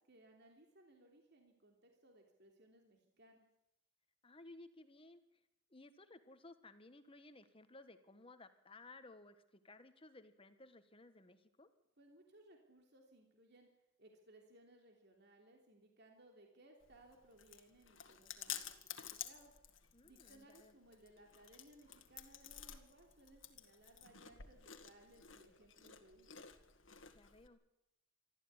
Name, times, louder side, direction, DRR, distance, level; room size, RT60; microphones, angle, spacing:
voice 1, 0.1-3.5 12.0-13.7 14.0-19.5 20.0-26.4, right 1 dB, 60° right, 2 dB, 3.2 m, -64 dB
voice 2, 4.2-5.2 5.7-11.7 19.9-20.7 27.1-27.6, left 2 dB, 30° left, 9 dB, 1.5 m, -58 dB
Chewing mastication, 16.8-27.5, left 10 dB, 80° left, 1.9 m, -52 dB
24.0 x 14.0 x 9.7 m, 0.87 s
head